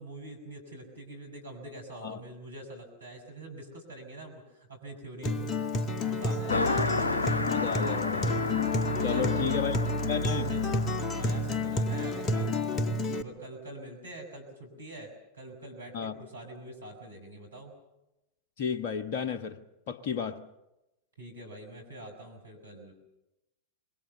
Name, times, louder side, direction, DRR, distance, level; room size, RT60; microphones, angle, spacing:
voice 1, 0.0-6.7 7.8-8.0 8.9-10.0 10.4-10.7 11.1-12.8 13.1-17.7 21.2-22.9, right 1 dB, 80° right, 6.0 m, -45 dB
Acoustic guitar, 5.2-13.2, left 2 dB, 30° left, 1.6 m, -30 dB
Car passing by, 6.5-12.3, left 2 dB, 75° left, 0.8 m, -32 dB
voice 2, 6.5-6.9 7.5-8.4 9.0-10.5 15.9-16.1 18.6-19.6 19.9-20.4, left 6 dB, 50° left, 1.2 m, -33 dB
27.0 x 22.0 x 7.1 m
figure-of-eight pair, 90°, 0 cm